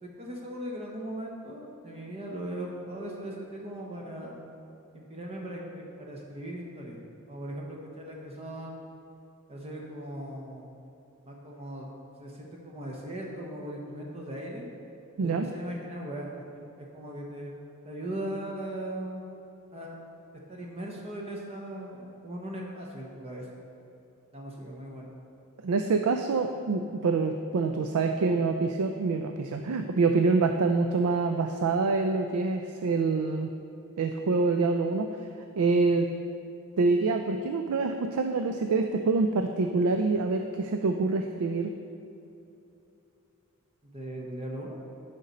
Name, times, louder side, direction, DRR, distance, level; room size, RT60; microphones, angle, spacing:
voice 1, 0.0-4.4 4.9-7.0 7.3-8.9 9.5-10.8 11.3-11.9 12.2-14.7 15.2-17.5 17.8-19.2 19.7-19.9 20.5-23.5 24.3-25.2 43.8-44.8, right 1 dB, 30° right, -1 dB, 0.9 m, -39 dB
voice 2, 25.6-33.5 34.0-35.3 35.6-36.1 36.8-41.7, right 3 dB, 75° right, 5 dB, 0.4 m, -26 dB
10.5 x 5.2 x 4.1 m, 2.8 s
head